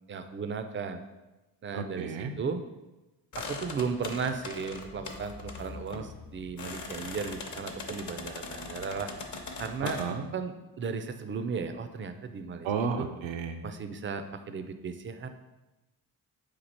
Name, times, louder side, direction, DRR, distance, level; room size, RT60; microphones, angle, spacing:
voice 1, 0.1-1.0 1.6-2.1 2.4-2.6 3.4-9.1 9.6-10.0 10.3-10.5 10.8-12.7 13.0-13.1 13.6-15.3, right 5 dB, 30° right, 9 dB, 0.4 m, -35 dB
voice 2, 1.7-2.4 9.8-10.3 12.6-13.6, right 5 dB, 80° right, 7 dB, 0.6 m, -32 dB
sound 1, 3.3-10.1, left 3 dB, 40° left, 0.8 m, -41 dB
4.5 x 2.4 x 4.2 m, 1.0 s
supercardioid pair, 50°, 46 cm